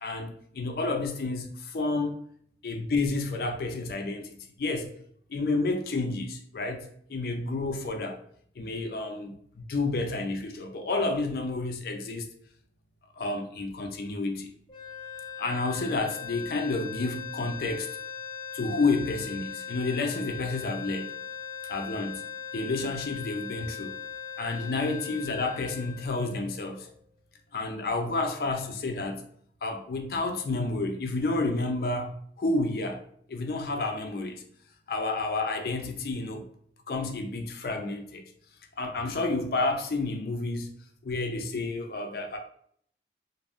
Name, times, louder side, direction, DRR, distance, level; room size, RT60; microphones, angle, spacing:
voice 1, 0.0-2.2 2.6-4.9 5.3-8.2 8.6-12.3 13.2-14.5 15.4-17.9 18.5-21.1 21.7-22.2 22.5-23.9 24.4-26.9 27.5-29.2 29.6-33.0 33.3-34.4 34.9-36.5 36.9-38.2 38.8-40.7 41.0-42.4, left 3 dB, 55° left, 4 dB, 0.4 m, -30 dB
sound 1, 14.7-26.9, left 7 dB, 25° left, 0.7 m, -39 dB
2.5 x 2.1 x 3.4 m, 0.62 s
head